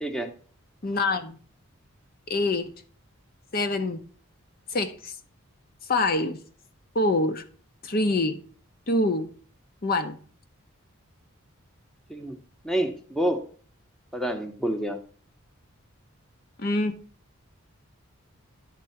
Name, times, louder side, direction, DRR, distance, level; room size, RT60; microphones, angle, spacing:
voice 1, 0.8-1.4 2.3-2.7 3.5-4.0 4.7-5.1 5.9-6.4 6.9-7.4 7.8-8.4 8.9-9.3 9.8-10.2 16.6-17.0, left 2 dB, 45° left, 7 dB, 0.6 m, -25 dB
voice 2, 12.6-13.4 14.1-15.0, right 1 dB, ahead, 5 dB, 0.8 m, -28 dB
11.0 x 3.7 x 5.7 m, 0.43 s
head